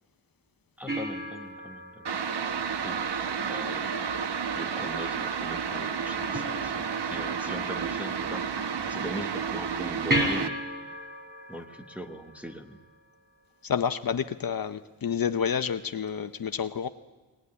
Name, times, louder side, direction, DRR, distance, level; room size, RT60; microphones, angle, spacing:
voice 1, 0.8-2.1 2.8-3.0 3.5-3.9 4.5-8.5 8.9-10.6 11.5-12.8, equal, 5° right, 3 dB, 1.2 m, -40 dB
sound 1, 0.9-3.5 6.3-7.3 10.1-13.0 16.1-16.2, equal, 25° right, 3.5 m, -34 dB
sound 2, 2.0-10.5, right 6 dB, 75° right, 1.0 m, -31 dB
voice 2, 13.6-16.9, left 7 dB, 55° left, 8 dB, 0.7 m, -29 dB
20.0 x 19.5 x 9.6 m, 1.2 s
wide cardioid pair, 165°, 42 cm